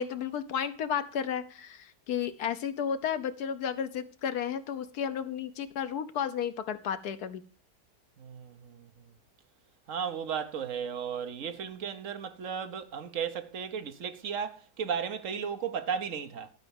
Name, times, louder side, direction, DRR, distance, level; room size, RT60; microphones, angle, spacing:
voice 1, 0.0-7.4, left 8 dB, 70° left, 1.4 m, -33 dB
voice 2, 8.2-8.9 9.9-16.5, right 7 dB, 55° right, 1.2 m, -35 dB
12.0 x 4.8 x 7.1 m
omnidirectional pair, 1.8 m